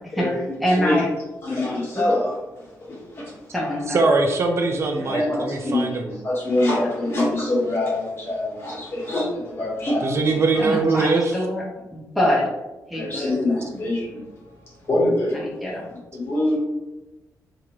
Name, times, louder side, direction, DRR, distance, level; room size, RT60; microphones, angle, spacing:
voice 1, 0.6-1.1 1.9-2.1 3.5-4.1 5.0-5.1 10.6-11.6 11.9-12.5 12.9-13.3 15.3-15.9, equal, ahead, -5 dB, 0.7 m, -24 dB
voice 2, 1.4-3.4 5.1-10.4 12.9-14.4 14.8-15.5 15.9-16.6, left 1 dB, 40° left, -6 dB, 1.5 m, -25 dB
voice 3, 3.9-5.9 10.0-11.3, right 3 dB, 45° right, 3 dB, 0.4 m, -21 dB
3.6 x 2.9 x 3.0 m, 1.1 s
wide cardioid pair, 150°, 6 cm